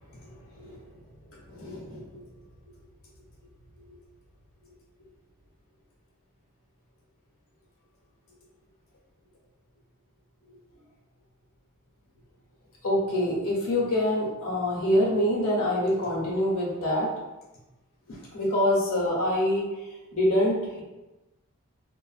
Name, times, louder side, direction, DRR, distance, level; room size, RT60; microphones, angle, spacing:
voice 1, 0.3-0.8 1.5-2.2 12.8-17.1 18.1-19.6 20.1-20.8, left 1 dB, 90° left, -4 dB, 1.0 m, -26 dB
3.2 x 2.4 x 2.4 m, 1.0 s
head